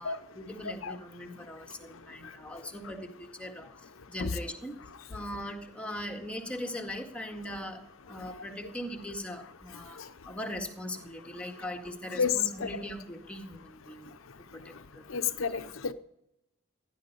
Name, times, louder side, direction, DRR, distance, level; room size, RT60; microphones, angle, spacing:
voice 1, 0.0-4.8 5.1-14.1 14.5-15.2, equal, 5° left, 2 dB, 1.8 m, -40 dB
voice 2, 15.1-15.9, left 6 dB, 85° left, 11 dB, 0.7 m, -30 dB
16.0 x 11.0 x 5.5 m, 0.83 s
head